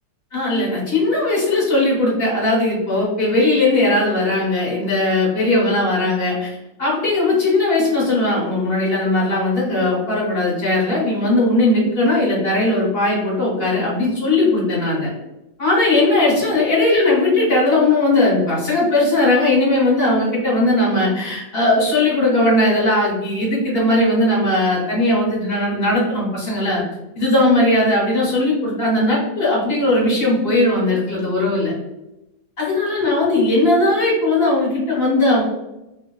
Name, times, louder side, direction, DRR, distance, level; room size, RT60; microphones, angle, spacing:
voice 1, 0.3-15.1 15.6-26.8 27.2-31.7 32.6-35.4, left 2 dB, 40° left, -4 dB, 1.0 m, -18 dB
3.1 x 3.0 x 2.3 m, 0.93 s
omnidirectional pair, 2.0 m